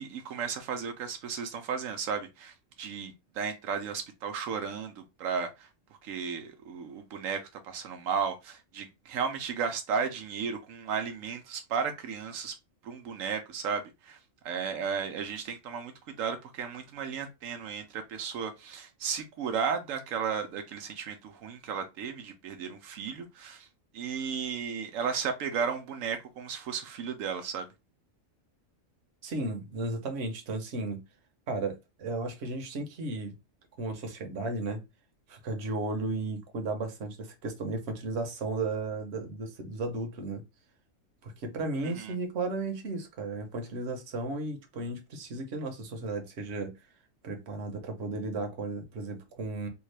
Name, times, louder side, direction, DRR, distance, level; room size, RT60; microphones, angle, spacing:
voice 1, 0.0-5.7 6.0-12.5 12.8-14.2 14.4-23.7 23.9-27.7 41.8-42.1, right 6 dB, 85° right, 1.0 m, -34 dB
voice 2, 29.2-31.0 31.5-33.3 33.8-34.8 35.3-40.4 41.2-46.7 47.2-49.7, right 3 dB, 60° right, 1.0 m, -34 dB
3.5 x 2.3 x 3.2 m
omnidirectional pair, 1.4 m